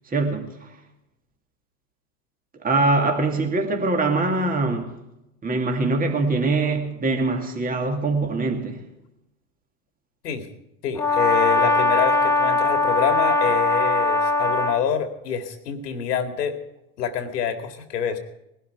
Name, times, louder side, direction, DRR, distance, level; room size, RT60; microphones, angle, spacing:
voice 1, 0.1-0.7 2.6-4.8 5.4-8.8, right 3 dB, 15° right, 2.4 m, -23 dB
voice 2, 10.8-16.6 17.0-18.2, left 7 dB, 80° left, 2.3 m, -26 dB
Brass instrument, 11.0-14.8, left 3 dB, 5° left, 1.2 m, -20 dB
19.5 x 12.0 x 4.6 m
hypercardioid pair, 105°, 48 cm